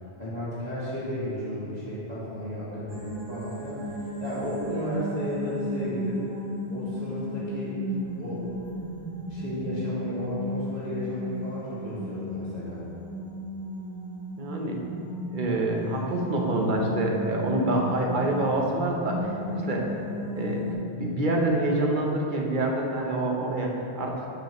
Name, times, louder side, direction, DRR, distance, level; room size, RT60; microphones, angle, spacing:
voice 1, 0.2-6.2 6.7-7.8 8.2-8.4 9.3-12.8, equal, 40° left, -9 dB, 2.0 m, -33 dB
sound 1, 2.9-20.7, left 1 dB, 25° right, 0.7 m, -35 dB
voice 2, 14.4-14.8 15.3-19.9 20.4-20.6 20.9-24.2, right 1 dB, 55° right, 0 dB, 1.0 m, -26 dB
11.5 x 5.0 x 3.0 m, 2.8 s
omnidirectional pair, 1.0 m